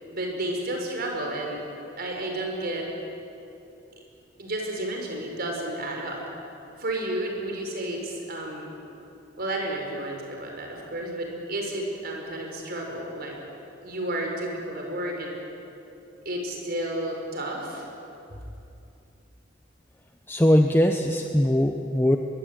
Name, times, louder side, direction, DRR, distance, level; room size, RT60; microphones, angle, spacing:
voice 1, 0.1-1.6 2.0-2.9 4.4-6.2 6.8-8.7 9.4-13.4 13.8-15.3 16.3-17.9, right 1 dB, 55° right, 1 dB, 5.4 m, -31 dB
voice 2, 20.3-22.2, equal, 10° left, 5 dB, 0.9 m, -21 dB
23.5 x 21.5 x 9.2 m, 2.8 s
head